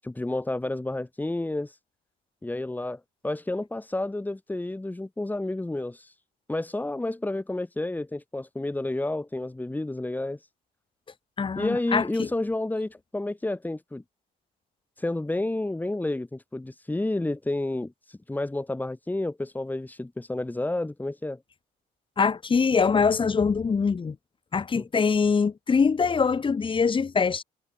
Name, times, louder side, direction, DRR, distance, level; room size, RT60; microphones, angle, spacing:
voice 1, 0.0-1.8 2.4-6.2 6.5-10.5 11.5-14.0 15.0-21.4 24.8-24.9, left 2 dB, 10° left, 7.8 m, -30 dB
voice 2, 11.4-12.3 22.2-24.1 24.5-27.4, left 5 dB, 30° left, 6.6 m, -23 dB
cardioid pair, 110°, 17 cm